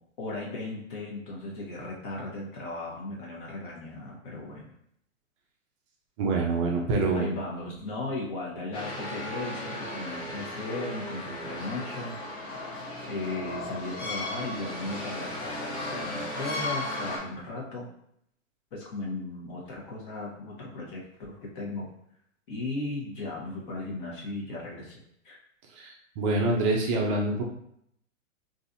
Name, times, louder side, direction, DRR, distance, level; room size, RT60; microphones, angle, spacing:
voice 1, 0.2-4.7 7.1-12.2 12.6-17.9 18.7-21.9 22.5-25.4, left 2 dB, 40° left, -3 dB, 1.1 m, -36 dB
voice 2, 6.2-7.3 25.8-27.4, right 3 dB, 25° right, 0 dB, 0.4 m, -26 dB
sound 1, 8.7-17.2, left 1 dB, 15° left, 0.6 m, -35 dB
3.9 x 2.7 x 2.5 m, 0.72 s
hypercardioid pair, 135°, 40 cm